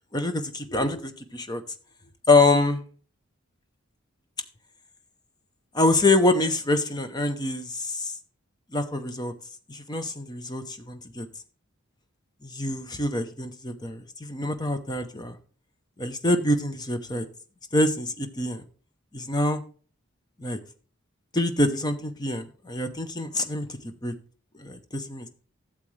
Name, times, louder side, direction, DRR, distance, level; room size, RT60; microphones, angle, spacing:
voice 1, 0.1-1.6 2.3-2.8 5.7-8.2 8.7-9.3 9.7-11.3 12.4-15.4 16.0-17.3 17.7-18.6 19.1-19.6 20.4-20.6 21.3-24.1 24.6-25.3, left 2 dB, 20° left, 8 dB, 0.8 m, -25 dB
12.5 x 7.5 x 3.3 m, 0.40 s
head